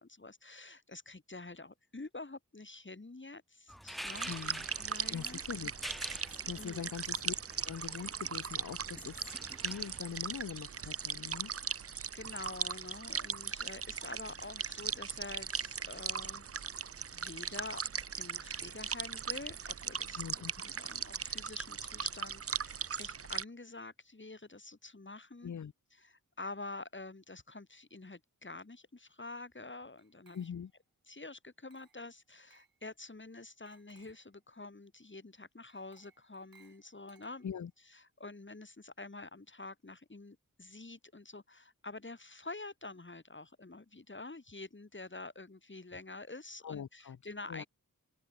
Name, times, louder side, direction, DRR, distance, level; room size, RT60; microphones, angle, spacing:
voice 1, 0.0-4.3 4.8-5.4 6.5-6.9 11.7-11.8 12.1-16.4 16.8-17.8 18.2-25.5 25.9-30.5 31.1-37.5 37.8-47.7, left 3 dB, 35° left, 3.3 m, -47 dB
sound 1, 3.7-10.0, equal, ahead, 1.0 m, -48 dB
sound 2, 4.1-23.4, right 6 dB, 40° right, 0.6 m, -39 dB
voice 2, 4.3-4.6 5.1-5.7 6.3-9.4 9.6-11.5 20.2-20.5 25.4-25.7 30.3-30.7 37.4-37.7 46.6-47.2 47.5-47.6, left 7 dB, 55° left, 0.7 m, -42 dB
Glass, 30.0-30.8 31.7-32.1 32.5-32.8 33.7-34.3 35.7-37.7, right 6 dB, 90° right, 4.1 m, -67 dB
open air
wide cardioid pair, 55°, 34 cm